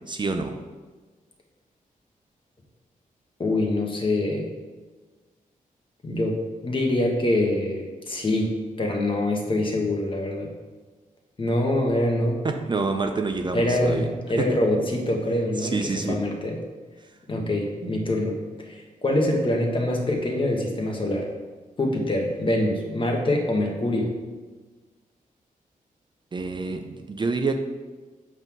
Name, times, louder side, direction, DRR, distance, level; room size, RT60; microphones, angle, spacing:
voice 1, 0.1-0.6 12.4-14.1 14.4-14.5 15.6-16.2 17.8-17.9 26.3-27.6, right 3 dB, 35° right, 5 dB, 0.5 m, -27 dB
voice 2, 3.4-4.4 6.0-8.5 8.8-10.5 11.4-12.4 13.5-16.6 17.3-18.4 18.7-21.3 21.8-24.1, left 1 dB, 35° left, 1 dB, 1.4 m, -24 dB
8.0 x 3.6 x 6.0 m, 1.4 s
wide cardioid pair, 115°, 14 cm